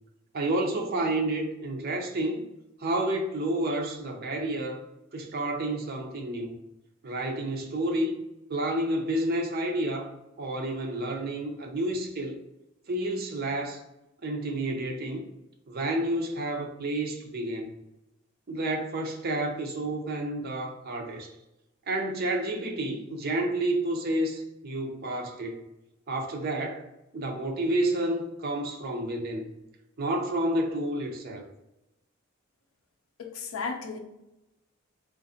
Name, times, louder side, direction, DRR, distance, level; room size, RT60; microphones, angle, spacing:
voice 1, 0.3-2.4 2.8-4.8 5.1-6.6 7.0-8.2 8.5-10.1 10.4-12.3 12.9-13.8 14.2-15.3 15.7-17.8 18.5-21.3 21.9-25.6 26.1-26.8 27.1-29.5 30.0-31.4, right 1 dB, 50° right, 2 dB, 0.5 m, -30 dB
voice 2, 33.2-34.0, left 5 dB, 80° left, 4 dB, 0.5 m, -34 dB
3.8 x 2.5 x 2.7 m, 0.93 s
head